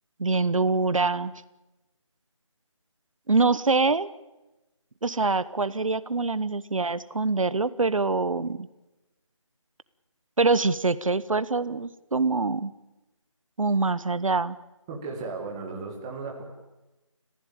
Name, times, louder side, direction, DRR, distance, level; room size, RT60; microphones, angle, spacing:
voice 1, 0.2-1.3 3.3-4.1 5.0-8.7 10.4-12.7 13.6-14.6, right 3 dB, 80° right, 16 dB, 1.0 m, -24 dB
voice 2, 14.9-16.4, right 4 dB, 10° right, 0 dB, 1.9 m, -35 dB
28.5 x 15.0 x 8.7 m, 1.0 s
figure-of-eight pair, 175°, 17 cm